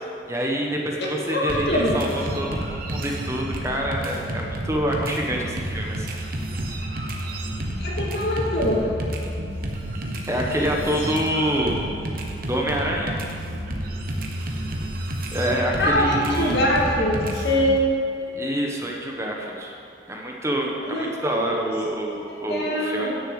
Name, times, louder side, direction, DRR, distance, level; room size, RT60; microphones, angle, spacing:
voice 1, 0.3-6.1 10.3-11.8 12.5-13.2 15.3-16.6 18.3-19.7 20.1-23.1, equal, 15° right, -1 dB, 1.1 m, -26 dB
voice 2, 1.0-1.9 7.8-8.8 15.8-17.8 20.8-21.1 21.4-21.5 22.5-23.1, left 1 dB, 65° left, -3 dB, 2.3 m, -23 dB
sound 1, 1.5-17.8, right 1 dB, 55° right, 1.2 m, -30 dB
10.0 x 6.6 x 7.9 m, 2.6 s
head